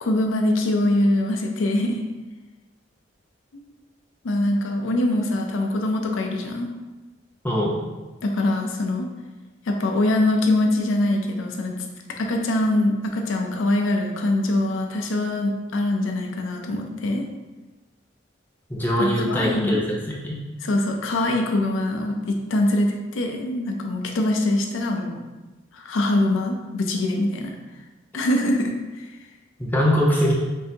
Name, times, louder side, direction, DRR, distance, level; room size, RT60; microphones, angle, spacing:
voice 1, 0.0-2.0 3.5-3.6 4.2-6.7 8.2-9.1 9.7-11.7 12.2-17.3 19.0-19.8 20.6-25.1 25.7-27.5 28.1-29.1, left 1 dB, 80° left, 2 dB, 0.5 m, -23 dB
voice 2, 7.4-7.8 18.7-20.4 29.6-30.3, equal, 10° left, -3 dB, 0.7 m, -22 dB
5.4 x 2.7 x 2.8 m, 1.2 s
head